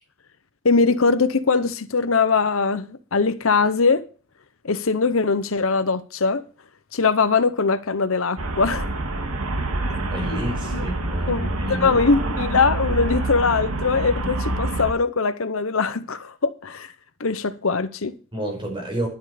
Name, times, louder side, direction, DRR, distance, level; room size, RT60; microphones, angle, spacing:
voice 1, 0.6-4.1 4.6-6.4 6.9-8.9 9.9-10.0 10.7-10.8 11.3-16.9 17.2-18.1, left 4 dB, 70° left, 0.8 m, -21 dB
Traffic noise roadway noise, 8.4-14.9, right 2 dB, 90° right, 2.1 m, -26 dB
voice 2, 9.9-11.9 18.3-19.1, right 1 dB, 20° right, 5.6 m, -30 dB
11.0 x 9.8 x 5.0 m
head